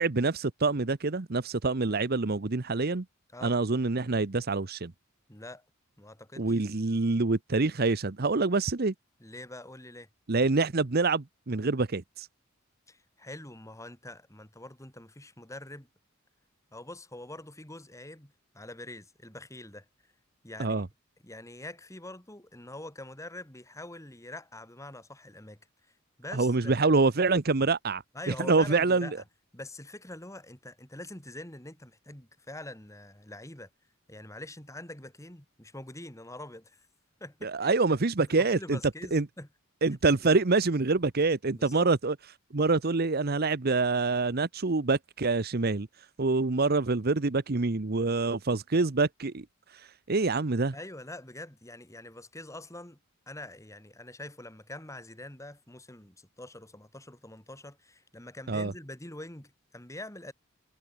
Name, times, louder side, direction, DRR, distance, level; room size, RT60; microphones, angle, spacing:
voice 1, 0.0-3.0 3.4-4.9 6.4-8.9 10.3-12.3 20.6-20.9 26.3-29.1 37.4-38.8 39.1-39.3 39.8-42.1 42.5-45.9 46.2-49.4 50.1-50.7 58.5-58.7, right 3 dB, 50° right, 0.9 m, -26 dB
voice 2, 5.3-5.6 6.0-6.6 9.2-10.1 12.9-15.9 16.7-19.8 20.4-20.9 21.2-25.6 26.2-26.9 28.1-29.2 29.5-33.7 34.1-36.9 37.2-37.7 38.2-39.5 40.2-40.4 41.5-41.9 50.7-53.0 53.3-60.3, left 1 dB, 15° left, 3.4 m, -45 dB
head